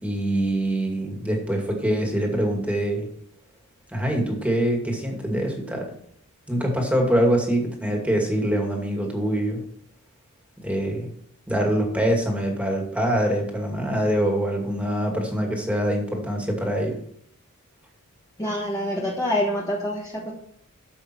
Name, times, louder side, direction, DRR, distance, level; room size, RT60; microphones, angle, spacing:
voice 1, 0.0-3.1 3.9-5.9 6.5-9.6 10.6-11.1 11.5-17.0, right 1 dB, 5° right, 1 dB, 2.4 m, -24 dB
voice 2, 18.4-20.3, left 1 dB, 15° left, -3 dB, 1.5 m, -26 dB
11.5 x 7.5 x 4.6 m, 0.65 s
head